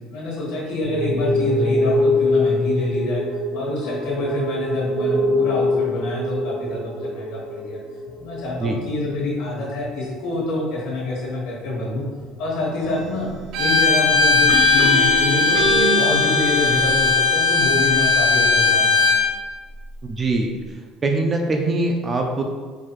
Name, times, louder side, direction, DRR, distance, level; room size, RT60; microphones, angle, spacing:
voice 1, 0.1-3.2 3.5-7.8 8.2-12.1 12.4-13.3 13.6-19.1, left 2 dB, 70° left, -4 dB, 1.3 m, -26 dB
sound 1, 0.8-9.3 9.6-10.2 10.5-10.6 11.1-11.2 12.2-14.4 14.7-14.8 15.0-15.9, left 1 dB, 55° left, 0.6 m, -24 dB
sound 2, 12.8-13.3 14.5-17.2, right 3 dB, 80° right, 1.2 m, -27 dB
Bowed string instrument, 13.5-19.3, left 5 dB, 55° right, 0.6 m, -18 dB
voice 2, 20.0-20.5 21.0-22.4, right 2 dB, 20° right, 2 dB, 0.3 m, -22 dB
4.5 x 2.4 x 3.0 m, 1.5 s
cardioid pair, 170°, 0 cm